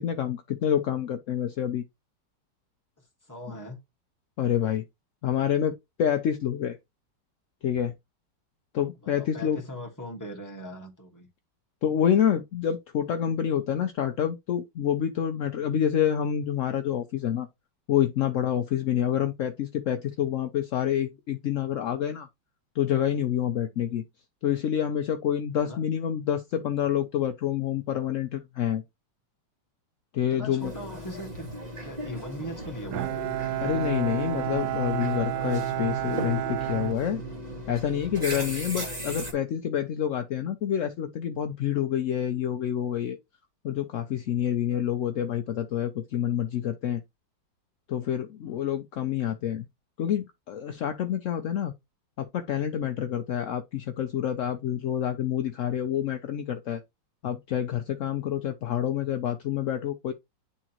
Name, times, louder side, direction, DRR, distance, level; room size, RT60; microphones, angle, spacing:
voice 1, 0.0-1.8 4.4-4.8 5.2-6.8 7.6-7.9 8.7-9.6 11.8-17.5 17.9-22.3 22.7-24.0 24.4-28.8 30.1-30.7 33.6-37.2 37.7-43.2 43.6-47.0 47.9-49.7 50.0-51.7 52.2-56.8 57.2-60.1, left 9 dB, 70° left, 0.7 m, -27 dB
voice 2, 3.0-3.8 9.0-11.3 18.7-18.9 23.5-23.7 25.6-25.8 30.3-31.5 31.8-33.3 41.7-41.9 48.4-48.7 58.2-58.3, equal, 10° left, 1.5 m, -41 dB
sound 1, 30.6-39.3, equal, 20° right, 1.9 m, -37 dB
Bowed string instrument, 32.9-37.8, right 14 dB, 70° right, 1.0 m, -31 dB
9.9 x 3.7 x 2.9 m
omnidirectional pair, 2.0 m